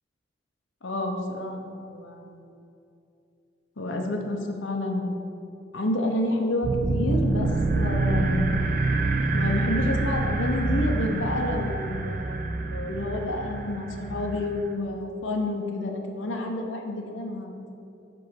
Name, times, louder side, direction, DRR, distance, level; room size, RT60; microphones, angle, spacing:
voice 1, 0.8-2.5 3.8-5.4 5.7-7.5 7.8-8.5 9.3-17.6, left 1 dB, 90° left, 2 dB, 0.9 m, -29 dB
sound 1, 6.6-14.7, right 3 dB, 45° right, 0.5 m, -26 dB
5.4 x 5.2 x 6.5 m, 2.6 s
head